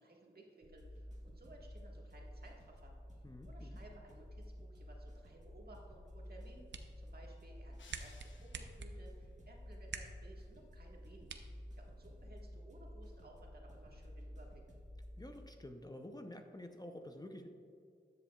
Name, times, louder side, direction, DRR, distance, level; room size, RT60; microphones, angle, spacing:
voice 1, 0.0-2.9 3.4-14.6, right 1 dB, 55° right, -1 dB, 1.6 m, -59 dB
sound 1, 0.6-15.4, equal, 40° right, 1.4 m, -52 dB
voice 2, 3.2-3.8 15.2-17.5, left 1 dB, 20° left, 5 dB, 0.7 m, -49 dB
sound 2, 6.3-12.3, right 5 dB, 75° right, 0.6 m, -51 dB
sound 3, 7.8-9.0, left 4 dB, 90° left, 0.9 m, -62 dB
12.5 x 7.3 x 2.4 m, 2.4 s
cardioid pair, 55°, 19 cm